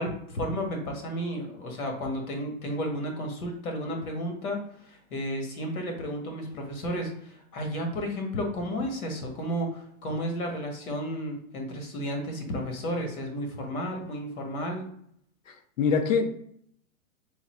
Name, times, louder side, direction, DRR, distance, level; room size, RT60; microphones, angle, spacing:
voice 1, 0.0-14.9, equal, 80° left, 2 dB, 1.4 m, -32 dB
voice 2, 15.5-16.3, left 5 dB, 65° left, 8 dB, 0.7 m, -25 dB
3.8 x 2.2 x 4.1 m, 0.68 s
hypercardioid pair, 155°, 42 cm